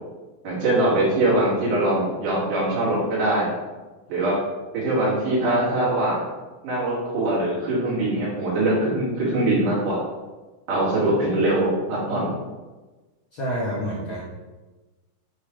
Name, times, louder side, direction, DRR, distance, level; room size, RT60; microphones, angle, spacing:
voice 1, 0.4-3.5 4.1-4.4 4.7-6.2 6.6-10.0 10.7-12.3, right 1 dB, 80° right, -7 dB, 3.7 m, -22 dB
voice 2, 13.3-14.2, equal, 60° left, -6 dB, 1.3 m, -28 dB
7.5 x 3.3 x 4.9 m, 1.2 s
omnidirectional pair, 3.6 m